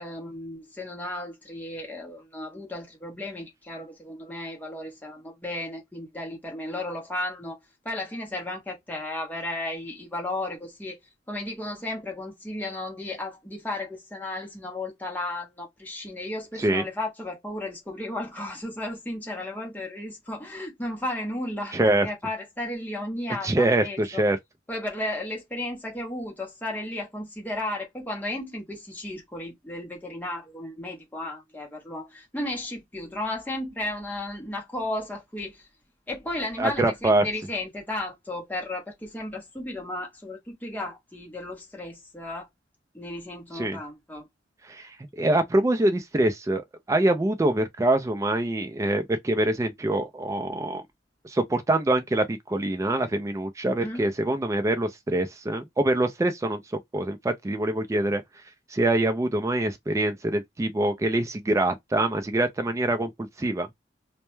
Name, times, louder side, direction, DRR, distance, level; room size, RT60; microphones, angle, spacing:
voice 1, 0.0-7.6 7.8-11.0 11.3-24.2 24.7-35.7 36.1-42.5 42.9-44.3 53.8-54.0, left 1 dB, 10° left, 0.8 m, -34 dB
voice 2, 21.7-22.1 23.4-24.4 36.6-37.3 43.5-43.8 44.6-50.8 51.2-58.2 58.7-63.7, right 1 dB, 15° right, 0.3 m, -25 dB
2.2 x 2.0 x 2.9 m
head